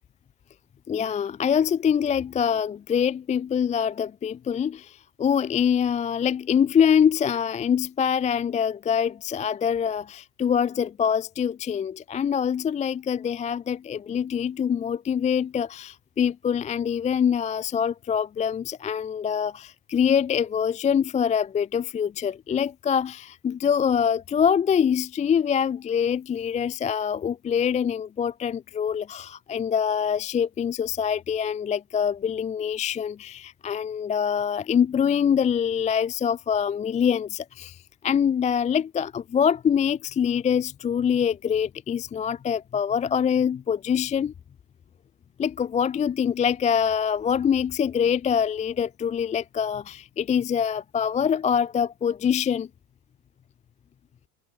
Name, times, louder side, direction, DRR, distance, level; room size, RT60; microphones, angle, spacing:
voice 1, 0.9-4.8 5.2-37.7 38.0-44.3 45.4-52.7, left 7 dB, 15° left, 0.5 m, -24 dB
hypercardioid pair, 95°, 43 cm